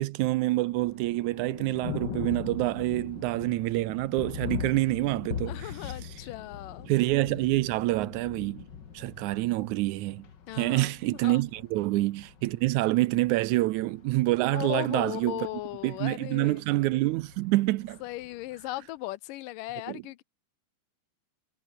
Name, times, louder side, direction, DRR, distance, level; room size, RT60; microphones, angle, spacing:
voice 1, 0.0-6.1 6.9-8.7 8.9-10.3 10.6-15.5 15.8-18.0 19.9-20.0, right 18 dB, 80° right, 1.9 m, -27 dB
Thunder, 0.6-18.6, left 7 dB, 45° left, 1.6 m, -41 dB
sound 1, 2.3-9.5, right 6 dB, 60° right, 4.6 m, -60 dB
voice 2, 5.5-6.9 10.5-11.4 14.5-16.6 18.0-20.2, left 17 dB, 85° left, 2.4 m, -37 dB
omnidirectional pair, 3.8 m